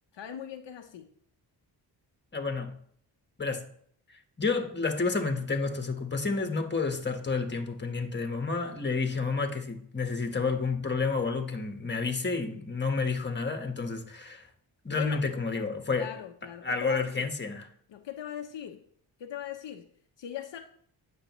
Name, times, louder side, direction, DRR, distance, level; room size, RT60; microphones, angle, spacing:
voice 1, 0.1-1.1 14.9-15.2 15.5-15.6 15.9-17.3 17.9-18.8 19.2-19.8 20.2-20.6, left 10 dB, 65° left, 0.9 m, -40 dB
voice 2, 2.3-2.8 3.4-3.6 4.4-14.5 14.8-16.1 16.6-17.7, left 4 dB, 25° left, 1.4 m, -30 dB
9.0 x 6.3 x 3.1 m
supercardioid pair, 45°, 46 cm